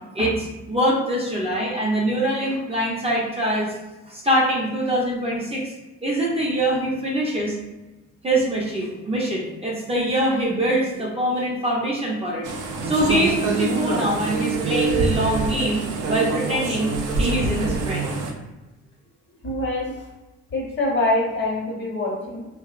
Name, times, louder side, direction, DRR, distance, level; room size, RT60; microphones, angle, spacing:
voice 1, 0.1-3.7 4.1-5.6 6.0-7.6 8.2-12.5 12.8-15.8 16.1-16.9 17.2-18.1, right 1 dB, 20° right, -4 dB, 0.5 m, -23 dB
sound 1, 12.4-18.3, right 4 dB, 90° right, 0.5 m, -25 dB
voice 2, 19.4-19.9 20.5-22.5, left 2 dB, 40° left, -2 dB, 0.7 m, -24 dB
2.6 x 2.0 x 2.3 m, 1.1 s
cardioid pair, 90°, 30 cm